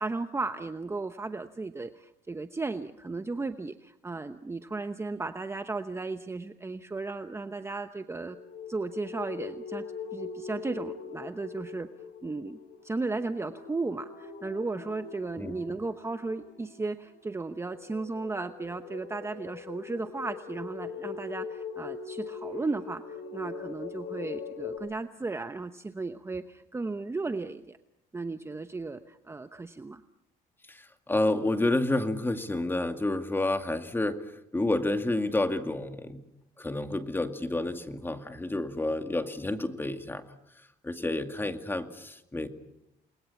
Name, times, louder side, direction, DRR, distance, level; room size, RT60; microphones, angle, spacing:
voice 1, 0.0-8.4 8.7-9.8 10.1-11.9 12.2-12.6 12.8-27.8 28.1-30.0, right 3 dB, 15° right, 9 dB, 0.9 m, -35 dB
sound 1, 8.0-24.8, left 6 dB, 80° left, 6.8 m, -42 dB
voice 2, 30.7-34.2 34.5-36.2 36.6-40.2 40.8-42.5, left 2 dB, 10° left, 7 dB, 2.2 m, -29 dB
29.5 x 21.5 x 7.1 m, 0.83 s
cardioid pair, 110°, 17 cm